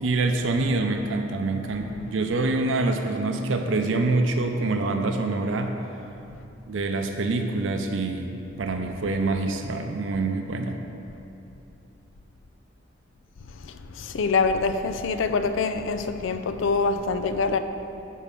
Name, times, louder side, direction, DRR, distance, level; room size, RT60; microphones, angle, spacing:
voice 1, 0.0-5.8 6.7-10.8, right 3 dB, 75° right, 5 dB, 0.5 m, -26 dB
voice 2, 13.6-17.6, left 4 dB, 80° left, 9 dB, 0.4 m, -25 dB
7.3 x 4.5 x 6.8 m, 2.8 s
head